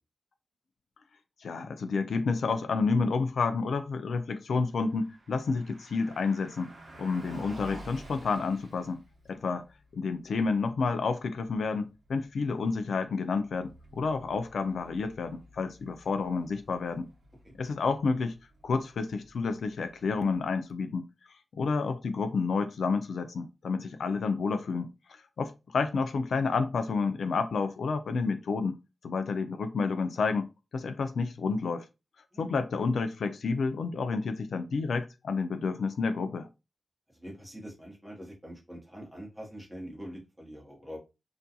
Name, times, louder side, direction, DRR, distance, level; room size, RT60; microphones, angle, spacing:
voice 1, 1.4-6.7 7.0-9.0 9.3-9.6 9.9-17.1 17.6-18.3 18.6-21.0 21.5-24.9 25.4-28.8 29.0-30.5 30.7-31.9 32.4-36.5, left 4 dB, 90° left, 0.3 m, -30 dB
Car passing by, 4.7-20.7, right 1 dB, 50° right, 0.7 m, -52 dB
voice 2, 37.1-41.0, equal, 5° right, 0.9 m, -44 dB
2.4 x 2.2 x 2.7 m
wide cardioid pair, 150°, 0 cm